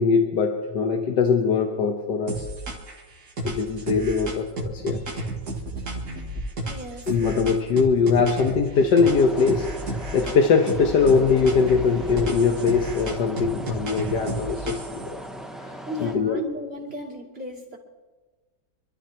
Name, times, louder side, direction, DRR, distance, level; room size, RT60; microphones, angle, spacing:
voice 1, 0.0-2.5 3.4-5.0 7.1-15.2 15.6-16.4, left 5 dB, 70° left, 3 dB, 1.6 m, -22 dB
sound 1, 2.3-3.0 3.4-8.6 9.0-10.4 10.7-15.1, right 1 dB, 55° right, 2.2 m, -32 dB
voice 2, 6.7-7.4 15.9-17.8, equal, 35° right, -3 dB, 3.0 m, -35 dB
sound 2, 9.0-16.1, right 1 dB, ahead, 0.6 m, -38 dB
26.5 x 12.5 x 2.9 m, 1.3 s
omnidirectional pair, 1.9 m